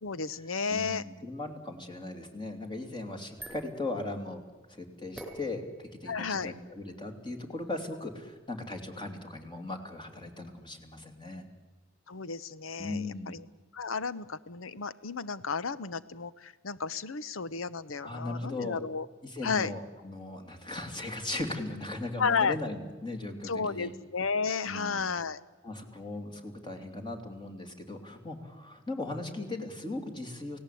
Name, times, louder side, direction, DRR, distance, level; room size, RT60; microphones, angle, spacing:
voice 1, 0.0-1.0 6.1-6.5 12.1-13.4 13.7-19.1 19.4-19.7 22.2-22.6 23.4-25.4, left 5 dB, 85° left, 16 dB, 0.9 m, -32 dB
voice 2, 0.7-4.4 4.7-11.5 12.8-13.4 18.0-18.8 19.2-23.9 24.6-25.1 25.6-30.6, left 2 dB, 25° left, 3 dB, 3.0 m, -38 dB
sound 1, 2.9-9.2, right 1 dB, ahead, 4.6 m, -52 dB
29.0 x 17.5 x 8.5 m, 1.3 s
head